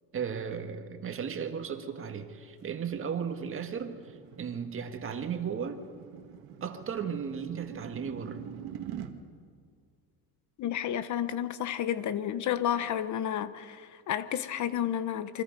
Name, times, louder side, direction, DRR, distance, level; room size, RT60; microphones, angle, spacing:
voice 1, 0.1-4.1 4.4-5.9 6.6-8.4, right 7 dB, 35° right, 1.8 m, -35 dB
sound 1, 2.7-9.1, right 10 dB, 70° right, 2.1 m, -45 dB
voice 2, 10.6-15.4, left 10 dB, 50° left, 1.0 m, -31 dB
28.5 x 25.0 x 5.3 m
cardioid pair, 150°, 39 cm